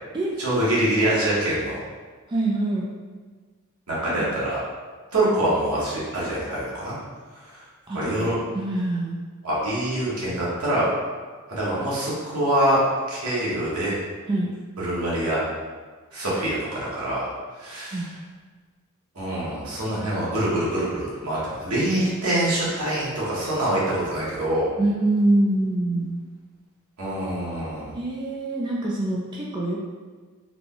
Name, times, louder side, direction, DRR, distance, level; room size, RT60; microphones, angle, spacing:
voice 1, 0.4-1.8 3.9-4.6 5.1-6.9 7.3-7.6 7.9-8.3 9.4-10.9 11.5-12.8 13.1-14.0 14.8-15.4 16.1-17.3 17.6-18.0 19.1-24.7 27.0-27.9, right 1 dB, 75° right, -7 dB, 1.4 m, -25 dB
voice 2, 2.3-2.9 4.2-4.3 7.9-9.2 14.3-14.5 17.9-18.1 24.8-26.2 27.9-29.8, right 2 dB, 20° right, -4 dB, 0.3 m, -24 dB
3.8 x 2.2 x 3.7 m, 1.4 s
head